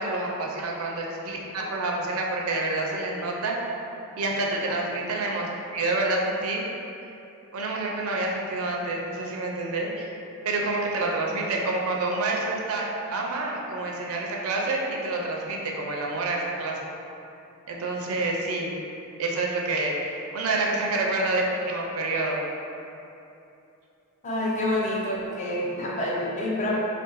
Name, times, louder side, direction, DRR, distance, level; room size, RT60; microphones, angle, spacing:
voice 1, 0.0-3.6 4.2-6.6 7.5-10.1 10.4-16.9 17.7-18.8 19.2-22.4, right 2 dB, 65° right, -1 dB, 0.4 m, -28 dB
voice 2, 24.2-26.8, left 1 dB, 30° left, -4 dB, 0.4 m, -27 dB
2.5 x 2.3 x 3.8 m, 2.8 s
head